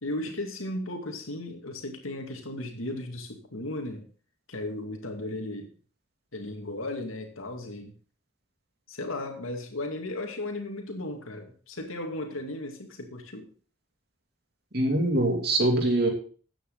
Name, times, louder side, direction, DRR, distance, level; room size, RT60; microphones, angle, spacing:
voice 1, 0.0-4.0 4.5-5.7 6.3-7.9 8.9-13.5, left 1 dB, 85° left, 4 dB, 2.4 m, -35 dB
voice 2, 14.7-16.1, right 1 dB, 50° right, 3 dB, 2.8 m, -23 dB
13.5 x 9.0 x 4.0 m, 0.40 s
head